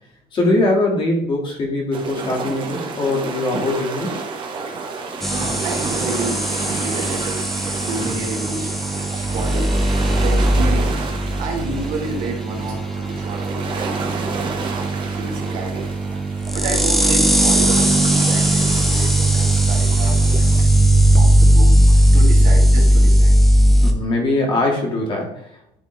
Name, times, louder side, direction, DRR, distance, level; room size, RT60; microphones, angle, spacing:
voice 1, 0.3-4.2 23.8-25.5, left 2 dB, 30° left, -1 dB, 2.0 m, -21 dB
sound 1, 1.9-20.6, right 4 dB, 30° right, 1.1 m, -31 dB
sound 2, 5.2-23.9, right 1 dB, ahead, 0.6 m, -17 dB
voice 2, 5.3-13.8 14.1-15.9 16.3-20.2 20.6-20.7 21.1-23.4, right 3 dB, 65° right, -1 dB, 2.1 m, -31 dB
11.0 x 3.7 x 3.2 m, 0.75 s
cardioid pair, 180°, 15 cm